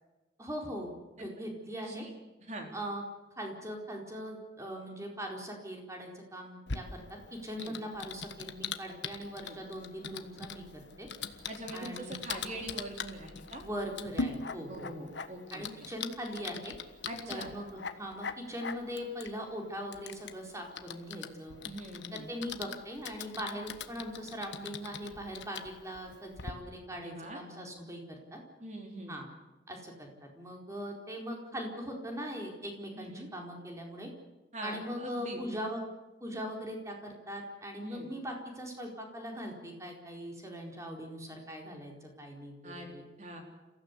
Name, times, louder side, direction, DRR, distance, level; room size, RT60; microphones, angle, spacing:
voice 1, 0.4-2.1 2.7-3.0 3.4-7.0 7.3-11.1 11.7-12.2 13.6-15.1 15.5-16.7 17.3-21.6 22.1-28.4 29.1-29.3 29.7-30.1 30.4-34.1 34.6-35.8 36.2-43.0, equal, 15° right, 1 dB, 4.4 m, -41 dB
voice 2, 1.8-2.1 2.4-2.7 7.6-7.7 9.4-9.5 11.5-13.6 14.7-15.6 17.0-17.5 21.6-22.3 27.0-27.4 28.6-29.1 32.9-33.3 34.5-35.4 37.8-38.1 42.6-42.9 43.2-43.4, right 1 dB, 40° right, 2 dB, 3.9 m, -43 dB
Typing, 6.7-26.5, left 5 dB, 75° left, 1.4 m, -42 dB
29.5 x 16.0 x 8.3 m, 1.1 s
head